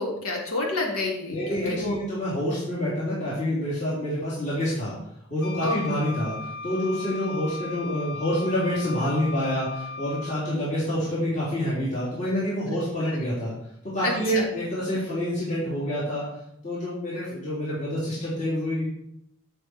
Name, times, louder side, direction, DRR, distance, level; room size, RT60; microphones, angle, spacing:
voice 1, 0.0-2.0 5.6-5.8 14.0-14.4, left 2 dB, 90° left, -1 dB, 3.2 m, -29 dB
voice 2, 1.3-4.9 5.3-13.5 13.9-16.3 16.6-18.8, equal, 35° left, -8 dB, 3.6 m, -27 dB
Wind instrument woodwind instrument, 5.4-10.5, left 3 dB, 50° left, 1.5 m, -38 dB
15.0 x 6.3 x 4.6 m, 0.76 s
head